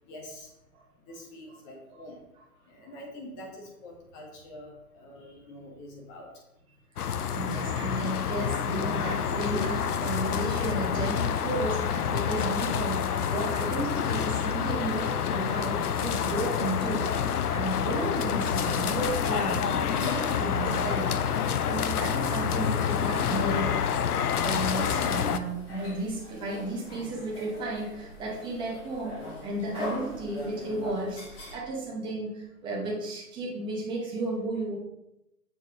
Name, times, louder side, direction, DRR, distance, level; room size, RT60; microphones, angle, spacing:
voice 1, 0.0-0.6 0.9-2.3 2.6-6.4, left 1 dB, 20° left, 0 dB, 1.1 m, -46 dB
sound 1, 7.0-25.4, left 8 dB, 75° left, 0.6 m, -28 dB
voice 2, 7.0-23.8 24.3-31.2 31.5-34.8, right 2 dB, 10° right, -3 dB, 1.1 m, -33 dB
sound 2, 19.8-31.6, left 2 dB, 40° left, 2.1 m, -43 dB
7.0 x 4.1 x 3.6 m, 0.87 s
hypercardioid pair, 140°, 45 cm